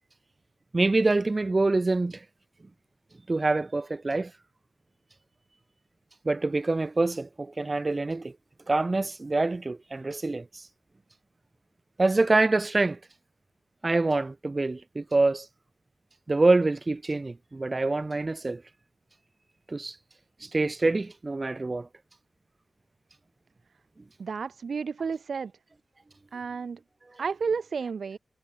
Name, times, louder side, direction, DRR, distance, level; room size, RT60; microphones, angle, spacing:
voice 1, 0.7-2.2 3.3-4.3 6.2-8.3 8.7-10.6 12.0-13.0 13.8-15.5 16.3-18.6 19.7-20.0 20.4-21.9, right 2 dB, 40° right, 2.2 m, -25 dB
voice 2, 24.2-25.5 26.3-26.8 27.2-28.2, right 5 dB, 75° right, 0.7 m, -31 dB
cardioid pair, 55°, 0 cm